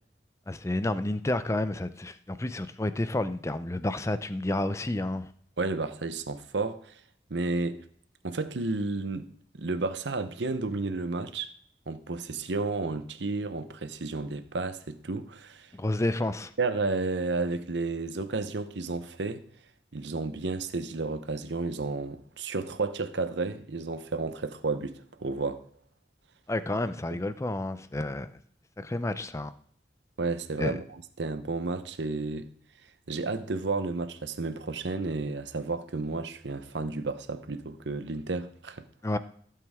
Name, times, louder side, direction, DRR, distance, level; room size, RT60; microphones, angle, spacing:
voice 1, 0.5-5.3 15.7-16.5 26.5-28.3 28.8-29.5 30.6-30.8 39.0-39.2, left 1 dB, 15° left, 0.5 m, -30 dB
voice 2, 5.6-7.0 7.3-7.8 8.2-11.5 11.9-15.7 16.6-19.4 19.9-25.7 30.2-32.5 33.1-38.9, right 3 dB, 85° right, 0.9 m, -32 dB
15.5 x 7.8 x 3.6 m
head